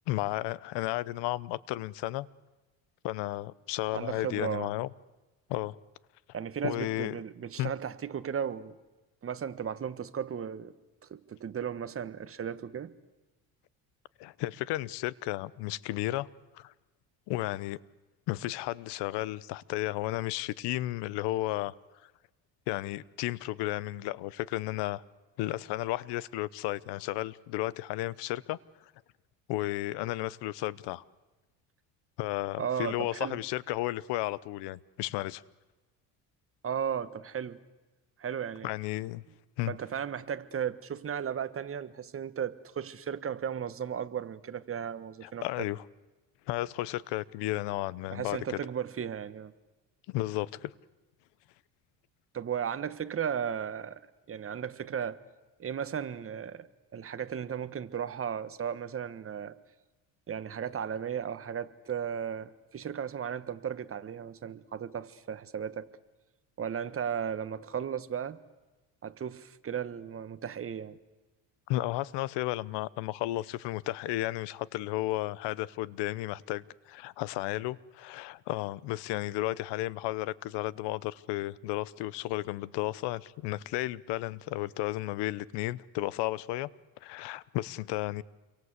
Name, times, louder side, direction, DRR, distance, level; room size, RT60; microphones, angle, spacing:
voice 1, 0.1-2.3 3.0-4.9 5.5-5.7 6.6-7.1 7.6-7.7 14.2-16.3 16.5-16.7 17.3-17.8 18.3-21.7 22.7-25.0 25.4-28.6 29.5-31.0 32.2-35.4 38.6-39.2 39.6-39.7 45.2-45.8 46.5-48.6 50.1-50.7 71.7-86.7 87.0-88.2, left 16 dB, 80° left, 1.0 m, -33 dB
voice 2, 3.9-4.7 6.3-8.7 9.2-10.7 11.1-12.9 32.6-33.4 36.6-37.6 38.2-38.7 39.7-45.7 48.1-49.5 52.3-54.0 54.3-55.2 55.6-56.7 56.9-59.6 60.3-65.9 66.6-68.4 69.0-71.0, right 8 dB, 35° right, 1.4 m, -35 dB
29.0 x 23.5 x 8.2 m
cardioid pair, 115°, 41 cm